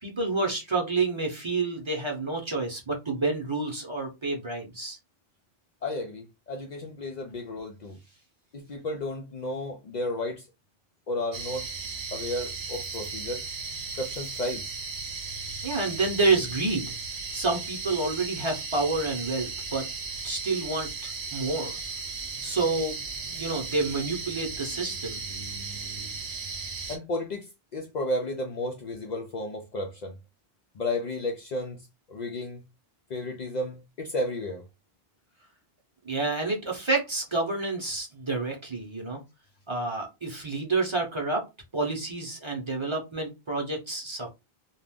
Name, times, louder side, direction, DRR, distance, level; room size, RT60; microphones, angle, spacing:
voice 1, 0.0-5.0 15.6-16.9 17.3-19.9 20.2-21.8 22.4-23.0 23.3-25.2 36.0-39.2 39.7-41.5 41.7-44.3, right 3 dB, 30° right, 0.8 m, -29 dB
voice 2, 5.8-8.0 8.5-10.5 11.1-11.6 12.1-13.4 13.9-14.7 26.9-30.1 30.7-32.6 33.1-34.6, left 1 dB, 55° left, 0.5 m, -33 dB
sound 1, 11.3-27.0, right 4 dB, 80° right, 0.9 m, -36 dB
2.4 x 2.3 x 3.4 m
omnidirectional pair, 1.0 m